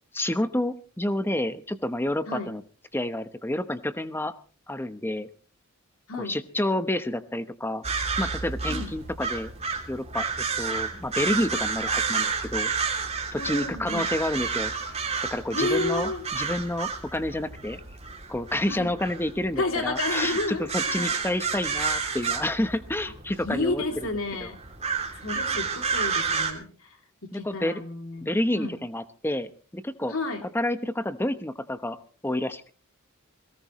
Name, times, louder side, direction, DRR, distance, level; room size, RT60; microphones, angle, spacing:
voice 1, 0.1-2.6 2.9-4.3 4.7-5.3 6.2-7.8 8.2-9.5 9.9-12.7 13.3-14.7 15.3-17.8 18.3-20.4 20.7-23.8 24.4-24.5 27.3-27.8 28.2-30.1 30.5-32.0 32.2-32.6, left 1 dB, 10° left, 11 dB, 0.9 m, -29 dB
voice 2, 2.3-2.6 6.1-6.4 8.7-8.9 13.4-14.1 15.5-16.2 18.7-18.9 19.6-21.4 23.4-24.6 25.2-28.8 30.1-30.4, left 2 dB, 70° left, 4 dB, 3.0 m, -31 dB
sound 1, 7.8-26.5, right 5 dB, 30° right, 2.8 m, -30 dB
21.5 x 18.0 x 3.1 m, 0.39 s
head